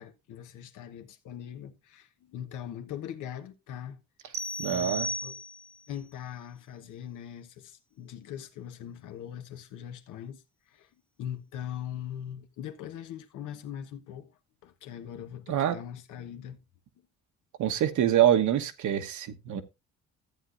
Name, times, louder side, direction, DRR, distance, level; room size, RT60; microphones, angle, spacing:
voice 1, 0.0-4.0 4.3-4.4 4.6-5.3 5.9-10.4 10.7-10.9 11.2-14.3 14.6-16.6, left 10 dB, 85° left, 1.1 m, -41 dB
sound 1, 4.3-5.9, equal, 50° right, 1.0 m, -35 dB
voice 2, 4.6-5.1 15.5-15.8 17.6-19.6, right 11 dB, 75° right, 1.2 m, -25 dB
13.5 x 8.1 x 2.5 m
cardioid pair, 90°, 30 cm